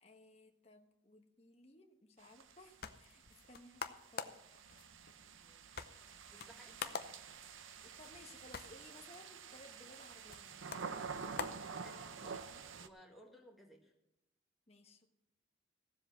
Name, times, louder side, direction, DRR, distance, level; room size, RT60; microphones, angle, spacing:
voice 1, 0.0-3.9 4.1-4.4 6.4-6.8 7.8-10.8 14.7-15.1, left 2 dB, 30° left, 3 dB, 1.2 m, -60 dB
sound 1, 2.2-12.9, right 5 dB, 90° right, 0.7 m, -49 dB
sound 2, 2.4-12.4, left 5 dB, 50° left, 0.7 m, -49 dB
voice 2, 5.4-5.9 6.3-7.2 11.8-13.9, equal, ahead, 0 dB, 1.9 m, -60 dB
15.5 x 7.6 x 6.1 m, 0.85 s
head